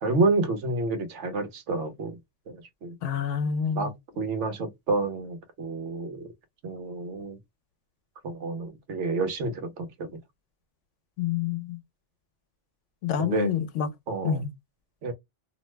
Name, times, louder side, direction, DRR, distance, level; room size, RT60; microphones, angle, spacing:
voice 1, 0.0-2.2 2.5-3.0 3.7-6.3 6.6-7.4 8.2-10.1 13.2-13.5 14.1-14.4 15.0-15.1, right 3 dB, 75° right, 1.2 m, -29 dB
voice 2, 3.0-3.9 11.2-11.8 13.0-13.9 14.2-14.5, left 8 dB, 85° left, 0.9 m, -27 dB
2.8 x 2.0 x 3.1 m
omnidirectional pair, 1.2 m